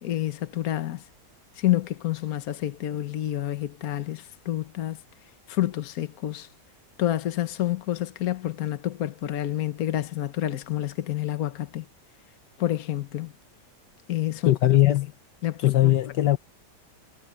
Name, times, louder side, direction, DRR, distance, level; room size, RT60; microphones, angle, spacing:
voice 1, 0.0-1.0 1.6-5.0 5.5-6.5 7.0-11.8 12.6-13.3 14.1-14.6 15.4-15.7, left 13 dB, 60° left, 1.4 m, -28 dB
voice 2, 14.4-15.1 15.6-16.4, left 15 dB, 75° left, 1.6 m, -19 dB
omnidirectional pair, 1.9 m